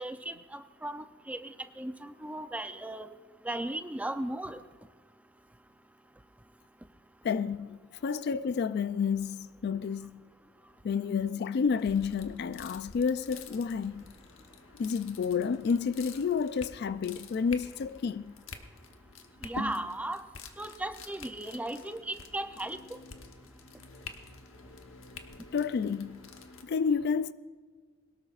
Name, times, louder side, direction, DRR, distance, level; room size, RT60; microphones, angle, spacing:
voice 1, 0.0-3.1 3.4-4.6 19.4-20.2 20.6-22.8, right 1 dB, 5° right, 0.5 m, -36 dB
voice 2, 7.2-10.2 10.8-14.0 14.8-18.3 25.5-26.3 26.6-27.3, left 6 dB, 55° left, 0.3 m, -30 dB
sound 1, 11.7-26.6, left 3 dB, 90° left, 1.1 m, -47 dB
21.5 x 18.5 x 2.4 m
head